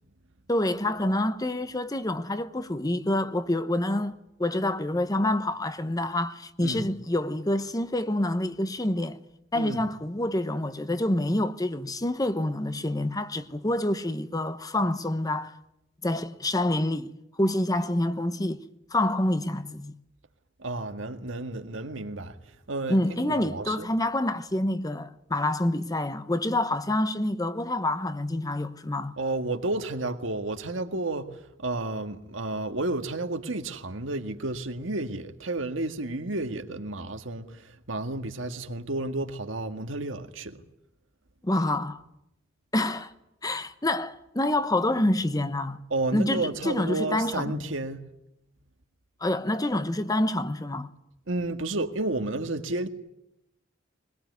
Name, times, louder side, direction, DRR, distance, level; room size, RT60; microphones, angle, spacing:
voice 1, 0.5-9.2 9.5-15.6 16.0-18.6 18.9-19.9 22.9-29.2 41.4-42.0 42.7-43.1 43.4-45.8 46.1-47.6 49.2-50.9, left 1 dB, 20° left, 1.0 m, -27 dB
voice 2, 20.6-22.4 22.7-23.9 29.2-40.6 45.9-48.0 51.3-52.9, right 2 dB, 80° right, 1.8 m, -31 dB
22.0 x 21.5 x 9.5 m
head